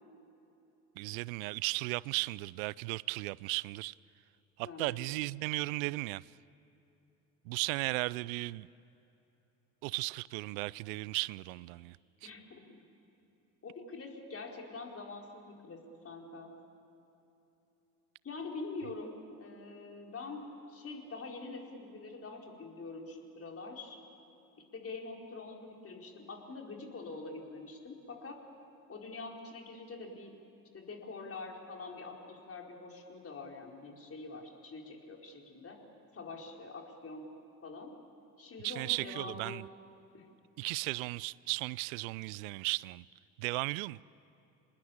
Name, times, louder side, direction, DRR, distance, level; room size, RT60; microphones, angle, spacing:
voice 1, 1.0-3.9 4.6-6.3 7.5-8.7 9.8-12.0 38.6-39.6 40.6-43.0 43.4-44.0, right 23 dB, 60° right, 0.5 m, -35 dB
voice 2, 4.6-5.0 12.2-12.6 13.6-16.5 18.2-24.0 24.7-28.4 28.9-30.4 30.7-35.8 36.1-37.3 37.6-38.0 38.4-39.6 40.1-40.3, left 3 dB, 30° left, 4.5 m, -45 dB
27.5 x 20.5 x 8.7 m
figure-of-eight pair, 65°, 47 cm